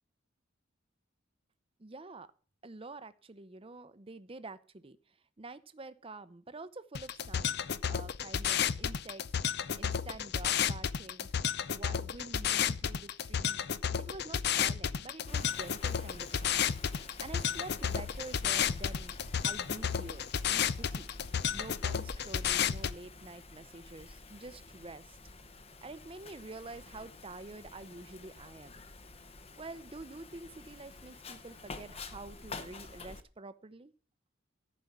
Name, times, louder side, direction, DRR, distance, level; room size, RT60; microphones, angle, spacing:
voice 1, 1.8-2.3 2.6-5.0 5.4-9.2 9.8-11.3 11.7-13.6 14.0-16.7 17.2-19.2 19.4-21.1 21.5-25.2 25.8-28.7 29.6-33.9, right 2 dB, 25° right, 14 dB, 0.7 m, -47 dB
sound 1, 6.9-22.9, left 8 dB, 55° left, 0.5 m, -32 dB
Wind, 15.3-33.2, left 3 dB, 30° left, 0.9 m, -49 dB
14.0 x 5.3 x 7.3 m, 0.39 s
head